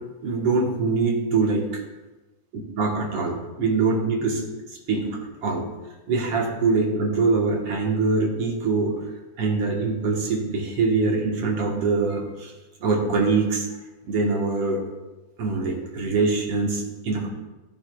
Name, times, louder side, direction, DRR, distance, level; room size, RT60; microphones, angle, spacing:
voice 1, 0.2-1.8 2.5-4.4 4.9-5.7 6.1-8.9 9.4-12.5 12.8-13.7 14.1-14.8 15.4-17.3, right 4 dB, 60° right, -1 dB, 1.6 m, -23 dB
16.0 x 7.5 x 2.3 m, 1.1 s
omnidirectional pair, 4.2 m